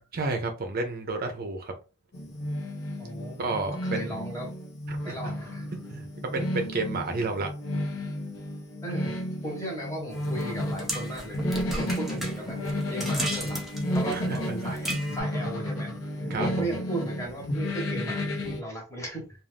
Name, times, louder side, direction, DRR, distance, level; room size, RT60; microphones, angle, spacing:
voice 1, 0.1-1.7 3.4-4.2 4.9-5.2 5.7-7.5 14.1-14.7 16.3-16.7, right 3 dB, 45° right, 0.5 m, -31 dB
sound 1, 2.1-18.6, left 1 dB, 70° left, 0.9 m, -32 dB
voice 2, 3.0-3.4 3.8-4.5 5.0-5.7 8.8-9.2 9.4-13.6 13.9-19.4, right 1 dB, 15° left, 1.1 m, -37 dB
sound 2, 10.1-15.2, right 1 dB, ahead, 0.6 m, -36 dB
2.5 x 2.4 x 3.3 m
head